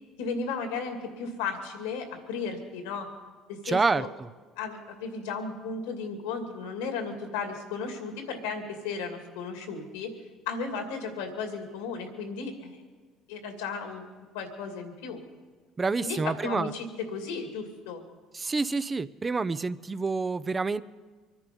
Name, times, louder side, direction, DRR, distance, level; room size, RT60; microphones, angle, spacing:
voice 1, 0.2-3.1 3.5-4.1 4.6-10.1 10.5-12.8 13.3-14.1 14.3-15.2 16.0-18.0, left 5 dB, 85° left, 5 dB, 2.4 m, -35 dB
voice 2, 3.6-4.3 15.8-16.7 18.3-20.8, right 4 dB, 25° right, 14 dB, 0.6 m, -28 dB
24.0 x 10.5 x 5.3 m, 1.4 s
hypercardioid pair, 70°, 0 cm